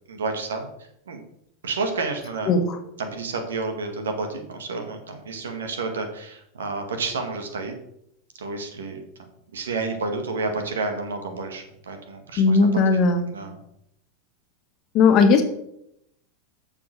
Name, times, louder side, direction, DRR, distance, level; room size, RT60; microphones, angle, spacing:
voice 1, 0.1-0.7 1.1-1.2 1.6-2.5 3.0-7.8 8.4-9.0 9.5-12.8 13.3-13.6, right 3 dB, 80° right, 5 dB, 1.9 m, -30 dB
voice 2, 12.4-13.3 14.9-15.4, left 4 dB, 45° left, 7 dB, 1.3 m, -17 dB
7.2 x 6.1 x 6.6 m, 0.77 s
hypercardioid pair, 90°, 0 cm